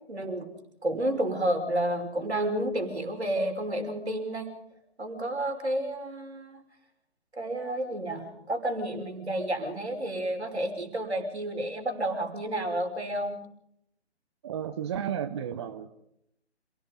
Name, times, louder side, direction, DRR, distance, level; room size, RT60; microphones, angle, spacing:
voice 1, 0.1-0.5 0.8-4.5 5.0-6.6 7.3-13.4, right 1 dB, 70° right, 4 dB, 5.7 m, -30 dB
voice 2, 14.4-16.0, right 9 dB, 25° right, 10 dB, 0.8 m, -33 dB
28.0 x 17.5 x 5.4 m, 0.76 s
figure-of-eight pair, 135°, 34 cm